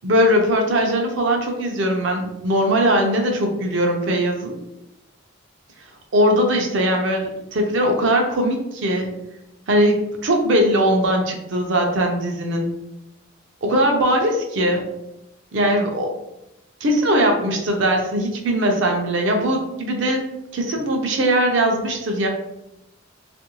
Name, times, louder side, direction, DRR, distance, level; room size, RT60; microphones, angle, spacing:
voice 1, 0.0-4.5 6.1-9.1 9.7-12.7 13.6-14.8 15.5-16.1 16.8-20.2 20.5-22.3, equal, 65° right, 2 dB, 0.6 m, -20 dB
2.6 x 2.5 x 2.9 m, 0.88 s
head